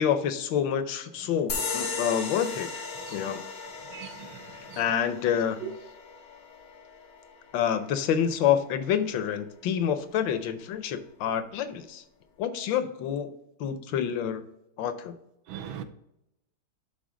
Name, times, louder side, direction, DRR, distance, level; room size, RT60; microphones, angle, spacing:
voice 1, 0.0-2.8 3.1-3.4 4.8-5.7 7.5-12.0 12.4-13.3 13.6-14.4 14.8-15.2, left 8 dB, 70° left, 1.4 m, -28 dB
sound 1, 1.5-8.6, left 4 dB, 85° left, 2.5 m, -37 dB
voice 2, 3.9-4.3 4.7-4.8 5.6-5.7 15.5-15.8, right 10 dB, 75° right, 1.4 m, -38 dB
11.5 x 3.9 x 3.7 m
omnidirectional pair, 2.3 m